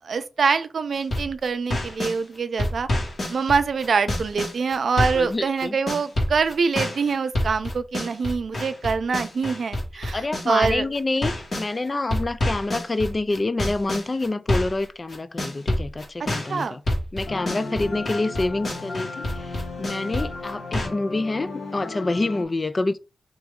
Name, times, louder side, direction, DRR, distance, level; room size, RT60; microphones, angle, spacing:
voice 1, 0.0-2.9 3.3-10.9 16.5-16.8, right 5 dB, 80° right, 0.4 m, -24 dB
sound 1, 1.0-2.2 2.6-5.3 5.6-11.7 12.1-20.9, left 1 dB, 65° left, 1.6 m, -27 dB
voice 2, 5.1-5.8 10.1-16.8 17.1-23.0, left 2 dB, 40° left, 0.3 m, -27 dB
sound 2, 17.3-22.4, left 3 dB, 85° left, 0.9 m, -35 dB
3.4 x 3.0 x 3.6 m
cardioid pair, 70°, 0 cm